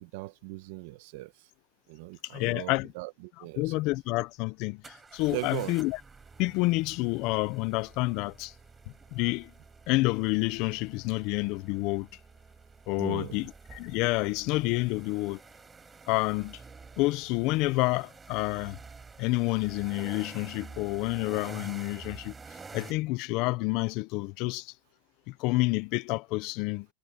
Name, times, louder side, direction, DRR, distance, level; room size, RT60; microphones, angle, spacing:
voice 1, 0.0-1.3 1.9-3.7 5.3-5.8 13.0-13.4, right 20 dB, 60° right, 1.1 m, -39 dB
voice 2, 2.3-2.9 3.6-6.0 6.4-8.5 9.1-9.5 9.9-12.1 12.9-15.4 16.1-16.6 17.0-18.8 19.2-22.3 22.7-24.7 25.3-26.9, left 22 dB, 45° left, 0.5 m, -29 dB
sound 1, 3.7-3.8 4.8-22.9, right 4 dB, 10° right, 4.1 m, -49 dB
supercardioid pair, 160°, 0 cm